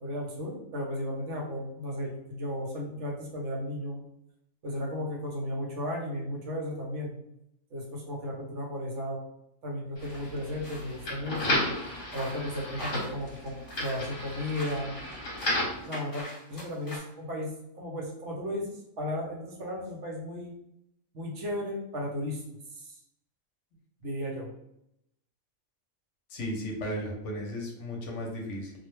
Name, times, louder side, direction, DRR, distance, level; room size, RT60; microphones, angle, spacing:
voice 1, 0.0-4.0 4.6-7.2 7.7-9.2 9.6-11.7 12.1-14.9 15.8-20.5 21.1-22.4 22.7-23.0 24.0-24.5, left 1 dB, 65° right, -1 dB, 0.9 m, -35 dB
sound 1, 10.0-15.8, left 1 dB, 45° left, 0.9 m, -34 dB
sound 2, 10.0-17.0, equal, 15° left, 1.0 m, -45 dB
voice 2, 26.3-28.7, equal, 70° left, 0 dB, 0.9 m, -35 dB
2.4 x 2.1 x 3.0 m, 0.80 s
omnidirectional pair, 1.4 m